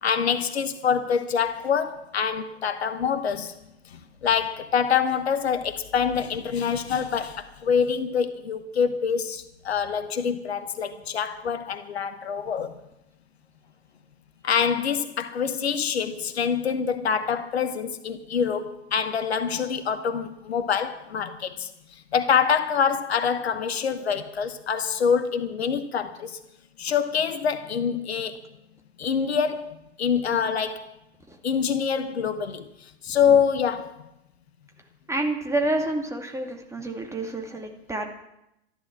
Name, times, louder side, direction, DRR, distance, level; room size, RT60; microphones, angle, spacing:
voice 1, 0.0-3.6 3.9-12.8 14.4-26.4 26.8-28.4 29.0-30.9 31.4-34.1, left 7 dB, 70° left, 1.2 m, -25 dB
voice 2, 35.1-38.1, right 2 dB, 10° right, 2.3 m, -28 dB
13.5 x 11.5 x 7.3 m
figure-of-eight pair, 80°, 33 cm